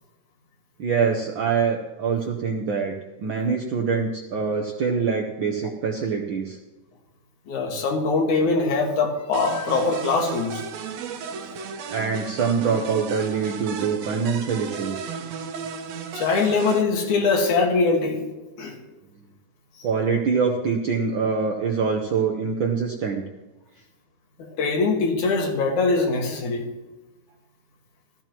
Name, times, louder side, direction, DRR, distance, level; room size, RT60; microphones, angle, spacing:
voice 1, 0.8-2.9 3.2-6.6 11.9-15.1 19.8-23.2, right 5 dB, 90° right, 2 dB, 1.0 m, -24 dB
voice 2, 7.5-10.6 16.1-18.2 18.6-18.7 24.4-26.7, left 4 dB, 80° left, 1 dB, 3.1 m, -22 dB
sound 1, 9.3-16.8, right 6 dB, 70° right, 2.0 m, -34 dB
14.5 x 14.5 x 3.0 m, 1.1 s
omnidirectional pair, 3.4 m